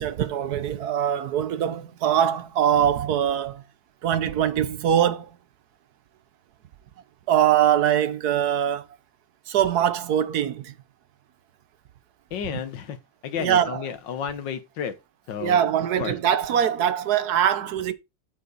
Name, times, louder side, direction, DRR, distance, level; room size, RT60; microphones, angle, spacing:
voice 1, 0.0-3.6 4.0-5.4 7.3-8.8 9.5-10.7 13.4-13.8 15.4-17.9, right 10 dB, 65° right, 1.3 m, -22 dB
voice 2, 12.3-13.0 13.2-15.0 15.3-15.6 16.0-16.2, left 8 dB, 80° left, 1.8 m, -31 dB
8.2 x 6.8 x 4.0 m
omnidirectional pair, 2.0 m